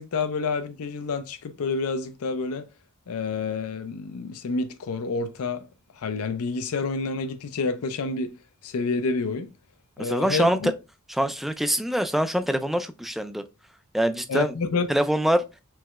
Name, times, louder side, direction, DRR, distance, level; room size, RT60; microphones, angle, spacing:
voice 1, 0.0-2.6 3.1-5.6 5.9-8.3 8.6-9.5 10.0-10.7 14.3-14.9, left 4 dB, 75° left, 0.5 m, -28 dB
voice 2, 10.0-10.7 11.2-13.4 13.9-14.5 14.9-15.4, equal, ahead, 0.3 m, -24 dB
4.6 x 3.1 x 2.3 m
head